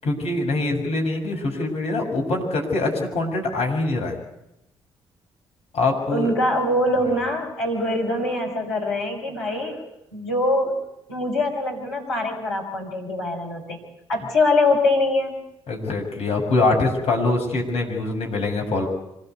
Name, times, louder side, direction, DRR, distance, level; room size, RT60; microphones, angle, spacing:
voice 1, 0.0-4.2 5.7-6.3 15.7-18.9, left 2 dB, 55° left, 1 dB, 7.0 m, -23 dB
voice 2, 6.1-9.8 10.1-10.8 11.1-13.8 14.1-15.4, left 2 dB, 80° left, -1 dB, 4.9 m, -23 dB
26.0 x 19.5 x 8.3 m, 0.85 s
hypercardioid pair, 40°, 12 cm